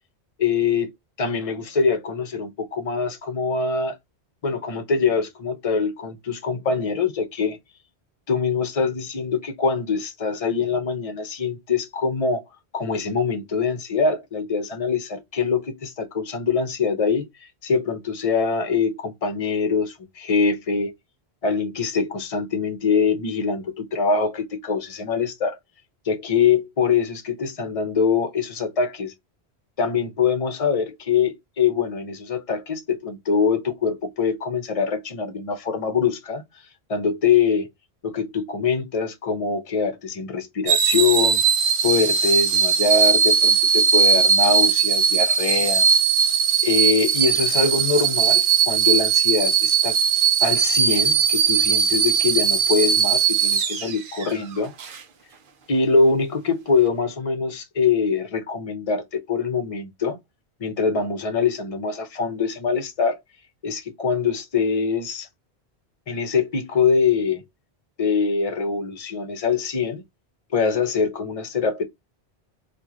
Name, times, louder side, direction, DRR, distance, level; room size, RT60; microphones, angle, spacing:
voice 1, 0.4-0.9 1.2-4.0 4.4-7.6 8.3-12.4 12.7-17.2 17.6-20.9 21.4-25.6 26.1-29.1 29.8-36.4 36.9-37.7 38.0-41.4 41.8-45.9 46.6-49.9 50.4-54.7 55.7-60.2 60.6-63.2 63.6-65.3 66.1-67.4 68.0-70.0 70.5-71.8, left 5 dB, 35° left, 0.8 m, -23 dB
sound 1, 40.7-54.3 54.8-55.0, right 7 dB, 60° right, 0.8 m, -19 dB
3.0 x 2.5 x 3.5 m
omnidirectional pair, 1.1 m